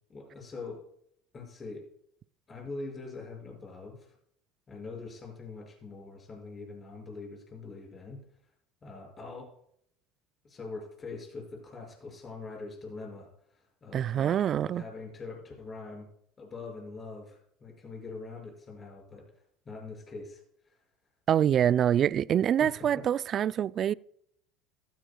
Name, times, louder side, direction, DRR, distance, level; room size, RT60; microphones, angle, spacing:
voice 1, 0.1-0.9 1.3-1.9 2.5-4.2 4.7-8.2 8.8-9.5 10.4-16.1 16.4-19.3 19.6-20.8 22.6-23.1, left 3 dB, 30° left, 5.9 m, -43 dB
voice 2, 13.9-14.8 21.3-23.9, right 9 dB, 45° right, 0.3 m, -25 dB
15.0 x 14.5 x 2.3 m
hypercardioid pair, 85°, 0 cm